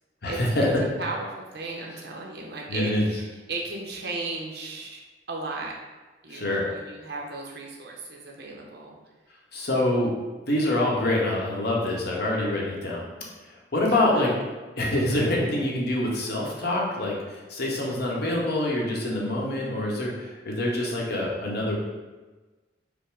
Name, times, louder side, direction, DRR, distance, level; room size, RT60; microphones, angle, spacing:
voice 1, 0.2-0.8 1.9-2.0 2.7-3.1 6.3-6.7 9.5-10.1 10.5-13.0 13.5-14.3 14.8-21.7, left 1 dB, 60° left, -3 dB, 1.0 m, -25 dB
voice 2, 1.0-5.0 5.3-5.7 6.2-9.0, right 3 dB, 65° right, -1 dB, 0.9 m, -35 dB
5.2 x 2.1 x 4.7 m, 1.2 s
head